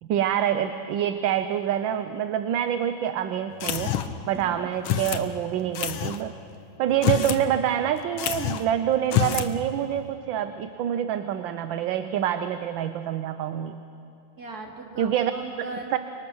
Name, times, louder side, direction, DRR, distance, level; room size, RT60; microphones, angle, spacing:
voice 1, 0.0-4.0 4.3-6.4 6.8-13.8 15.0-15.3 15.9-16.0, right 10 dB, 75° right, 10 dB, 1.4 m, -26 dB
sound 1, 3.6-4.3 4.8-5.3 5.7-6.2 6.9-7.4 7.7-7.8 8.2-8.7 9.0-9.5, left 10 dB, 85° left, 1.8 m, -26 dB
voice 2, 4.3-4.7 14.4-16.0, right 3 dB, 50° right, 0 dB, 3.1 m, -39 dB
28.5 x 24.5 x 6.3 m, 2.6 s
omnidirectional pair, 2.2 m